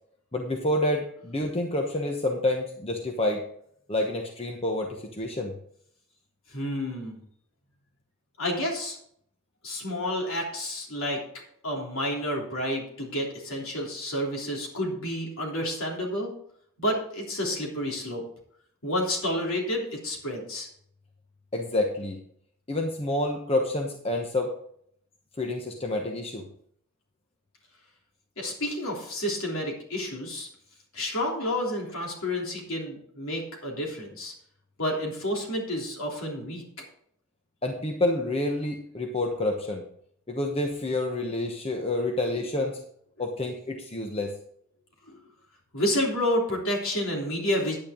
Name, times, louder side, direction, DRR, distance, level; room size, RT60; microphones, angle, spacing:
voice 1, 0.3-3.5 3.9-5.5 21.5-22.2 22.7-24.6 25.4-26.5 37.6-39.8 40.3-42.8 43.2-44.4, left 1 dB, 25° left, 2 dB, 1.0 m, -28 dB
voice 2, 6.5-7.2 8.4-9.0 9.6-11.2 11.6-16.3 16.8-18.2 18.8-20.7 28.4-30.5 30.9-34.3 34.8-36.6 45.0-45.2 45.7-47.8, left 1 dB, 70° left, -1 dB, 3.3 m, -30 dB
9.9 x 9.7 x 3.7 m, 0.66 s
head